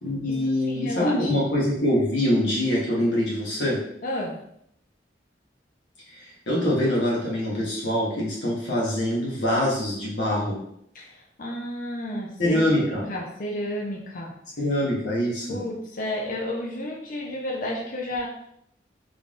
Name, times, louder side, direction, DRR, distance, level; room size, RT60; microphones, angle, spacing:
voice 1, 0.0-3.8 6.1-10.6 12.4-13.1 14.6-15.6, left 1 dB, 80° left, -5 dB, 1.2 m, -24 dB
voice 2, 0.6-1.3 4.0-4.4 10.9-12.8 13.1-14.3 15.5-18.3, left 1 dB, 50° left, -1 dB, 0.6 m, -31 dB
3.7 x 3.3 x 2.4 m, 0.73 s
head